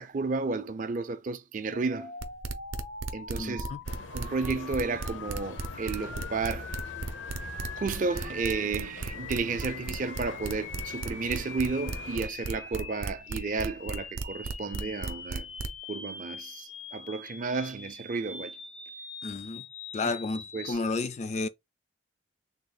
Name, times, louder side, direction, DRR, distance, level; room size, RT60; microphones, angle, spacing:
voice 1, 0.0-2.1 3.1-3.7 4.1-6.7 7.7-15.5 15.9-18.6 20.0-20.1 20.5-20.8, right 4 dB, 40° right, 0.4 m, -32 dB
sound 1, 1.7-20.7, left 3 dB, 90° left, 1.4 m, -43 dB
sound 2, 2.2-15.8, right 4 dB, 90° right, 0.6 m, -35 dB
voice 2, 3.4-3.8 19.2-19.6 19.9-21.5, left 3 dB, 35° left, 0.3 m, -32 dB
sound 3, 3.8-12.3, left 4 dB, 70° left, 0.7 m, -44 dB
3.5 x 2.3 x 3.8 m
head